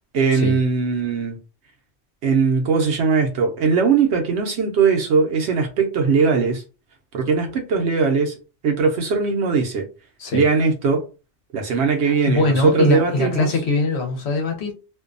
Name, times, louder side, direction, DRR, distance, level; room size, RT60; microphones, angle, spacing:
voice 1, 0.1-1.4 2.2-6.6 7.1-8.3 8.6-9.9 10.3-11.0 11.5-13.5, right 5 dB, 75° right, 0.9 m, -19 dB
voice 2, 12.0-14.7, left 3 dB, 70° left, 1.0 m, -22 dB
2.6 x 2.2 x 2.5 m
omnidirectional pair, 1.2 m